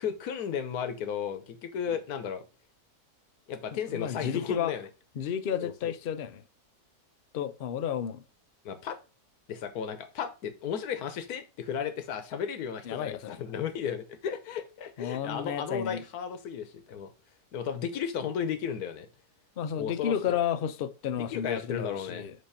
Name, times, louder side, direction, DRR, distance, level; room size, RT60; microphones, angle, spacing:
voice 1, 0.0-2.4 3.5-4.9 5.6-5.9 8.6-9.0 9.5-17.1 17.5-19.1 19.8-20.4 21.1-22.2, left 7 dB, 80° left, 1.4 m, -34 dB
voice 2, 3.9-4.7 5.2-6.4 7.3-8.2 12.9-13.4 15.0-16.0 19.6-22.3, left 9 dB, 55° left, 0.6 m, -32 dB
8.1 x 3.1 x 5.7 m
omnidirectional pair, 1.6 m